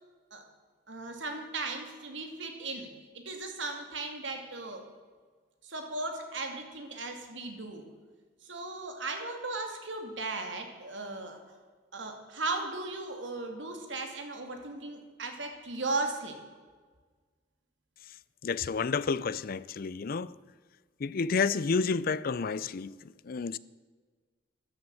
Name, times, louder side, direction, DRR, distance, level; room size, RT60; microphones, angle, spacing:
voice 1, 0.9-2.9 3.1-4.9 5.6-7.8 8.4-11.4 11.9-16.4, right 3 dB, 70° right, 2.5 m, -37 dB
voice 2, 18.4-20.3 21.0-23.6, left 5 dB, 50° left, 0.4 m, -30 dB
13.5 x 11.0 x 7.6 m
head